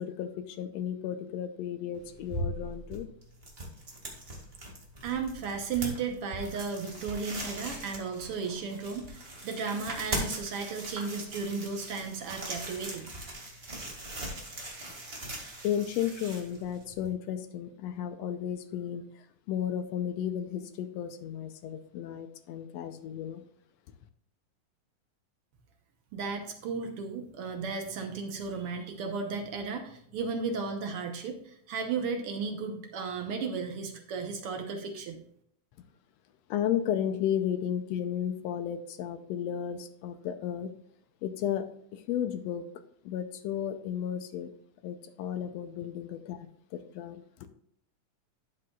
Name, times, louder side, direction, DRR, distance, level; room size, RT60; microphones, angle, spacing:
voice 1, 0.0-3.1 15.6-23.4 36.5-40.7 41.2-41.7 41.9-42.6 43.0-44.5 44.8-46.4 46.7-47.2, left 9 dB, 80° left, 10 dB, 1.6 m, -33 dB
sound 1, 1.9-17.1, right 1 dB, 25° right, 1.8 m, -40 dB
voice 2, 5.0-13.1 26.1-35.2, right 5 dB, 70° right, 5 dB, 1.4 m, -34 dB
12.0 x 7.8 x 2.3 m, 0.68 s
omnidirectional pair, 3.5 m